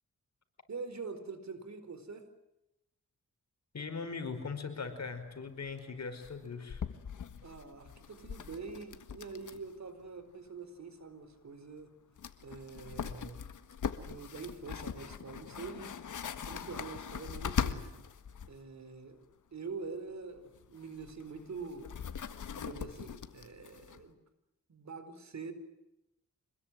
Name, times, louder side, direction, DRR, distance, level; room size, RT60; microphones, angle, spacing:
voice 1, 0.7-2.3 7.4-11.9 12.4-13.4 14.0-15.9 16.5-17.9 18.5-19.3 19.5-21.9 22.6-24.2 24.7-25.5, right 4 dB, 65° right, 10 dB, 4.6 m, -45 dB
voice 2, 3.7-6.8, left 4 dB, 60° left, 7 dB, 5.2 m, -40 dB
sound 1, 4.9-5.0 5.2-5.3 5.6-5.8 6.2-9.8 10.0-10.1 11.8-11.9 12.2-18.5 20.4-24.0, left 7 dB, 85° left, 1.6 m, -41 dB
26.5 x 21.5 x 9.2 m, 0.89 s
cardioid pair, 75°, 30 cm